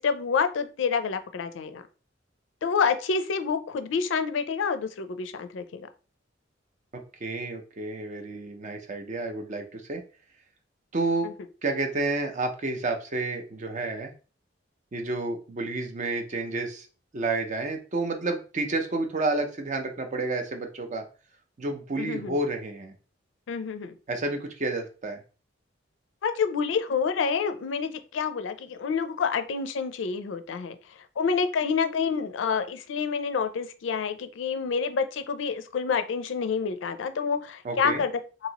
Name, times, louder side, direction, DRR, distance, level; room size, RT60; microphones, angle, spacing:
voice 1, 0.0-1.8 2.6-5.9 11.2-11.3 22.0-22.3 23.5-23.9 26.2-30.8 31.2-38.1, left 5 dB, 70° left, 9 dB, 0.4 m, -28 dB
voice 2, 7.2-10.0 10.9-11.3 11.6-14.1 14.9-16.9 17.1-21.0 21.6-22.9 24.1-25.2 37.6-38.0, right 2 dB, 40° right, 4 dB, 0.5 m, -30 dB
2.9 x 2.7 x 2.8 m, 0.36 s
head